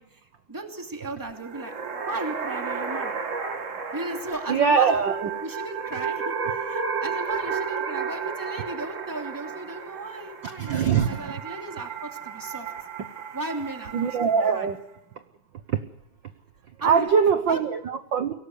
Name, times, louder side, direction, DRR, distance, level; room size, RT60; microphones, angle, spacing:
voice 1, 0.0-1.7 2.1-3.1 3.9-5.0 5.4-12.7 13.3-14.7 16.8-17.6, right 2 dB, 5° right, 3 dB, 2.3 m, -36 dB
sound 1, 1.3-14.7, right 5 dB, 40° right, 1.1 m, -33 dB
voice 2, 4.5-5.3 10.6-11.4 13.9-14.8 15.7-15.8 16.8-18.3, right 6 dB, 80° right, 9 dB, 1.0 m, -22 dB
23.0 x 18.0 x 8.3 m, 0.82 s
omnidirectional pair, 3.5 m